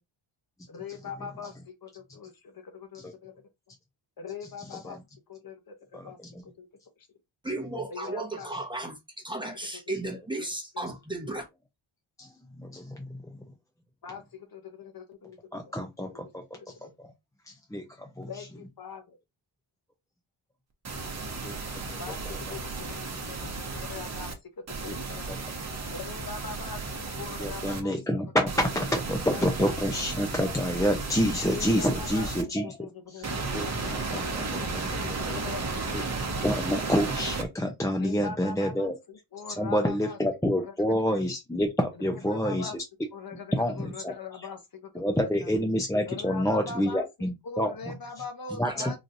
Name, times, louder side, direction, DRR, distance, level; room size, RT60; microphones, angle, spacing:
voice 1, 0.7-3.3 4.2-5.0 5.3-6.7 7.9-8.5 14.0-15.7 16.1-16.2 16.8-16.9 18.3-19.2 22.0-25.3 25.9-28.0 29.3-29.8 31.5-32.3 32.6-36.7 38.0-40.2 40.5-40.7 41.1-41.2 42.0-42.8 43.1-45.1 45.4-45.5 46.1-47.0 47.4-49.0, left 5 dB, 45° left, 0.9 m, -42 dB
voice 2, 4.6-5.0 5.9-6.4 12.2-13.5 15.5-17.1 17.5-18.5 21.4-22.6 24.9-25.4 27.4-32.8 33.1-33.2 33.5-35.4 35.9-36.0 36.4-38.9 39.6-42.8 43.5-44.1 44.9-48.0 48.5-49.0, equal, 5° left, 0.5 m, -29 dB
voice 3, 7.4-11.5 48.6-49.0, right 2 dB, 10° right, 0.9 m, -35 dB
sound 1, 20.8-24.3 24.7-27.8 28.5-32.4 33.2-37.4, right 3 dB, 35° right, 0.9 m, -34 dB
4.0 x 3.0 x 2.6 m
wide cardioid pair, 130°, 49 cm